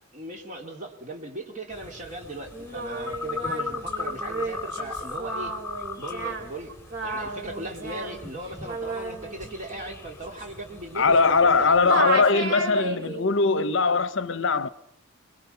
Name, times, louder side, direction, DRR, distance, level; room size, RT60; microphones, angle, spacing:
voice 1, 0.1-5.6 6.0-6.7 7.0-12.5, right 1 dB, 35° right, 3.2 m, -38 dB
sound 1, 1.7-11.9, left 4 dB, 10° left, 2.9 m, -38 dB
Singing, 2.5-11.5 11.8-13.3, right 3 dB, 55° right, 4.1 m, -33 dB
voice 2, 10.9-14.7, left 4 dB, 60° left, 0.8 m, -21 dB
29.5 x 22.0 x 5.7 m
head